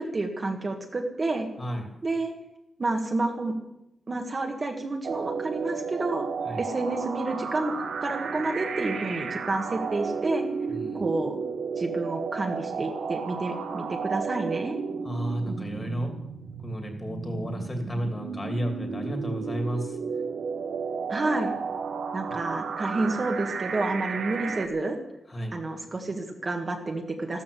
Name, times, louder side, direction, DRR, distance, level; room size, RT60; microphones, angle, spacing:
voice 1, 0.0-1.5 2.0-2.3 2.8-3.5 4.1-6.3 6.6-10.5 10.9-11.4 11.8-14.7 21.1-21.5 22.1-25.0 25.5-27.4, right 2 dB, 35° right, 2 dB, 1.7 m, -29 dB
sound 1, 5.0-24.7, right 5 dB, 80° right, 1.5 m, -33 dB
voice 2, 10.7-11.0 15.0-16.1 16.6-20.0 25.3-25.5, equal, 20° left, 4 dB, 2.7 m, -32 dB
14.5 x 13.5 x 7.0 m, 0.86 s
wide cardioid pair, 150°, 0 cm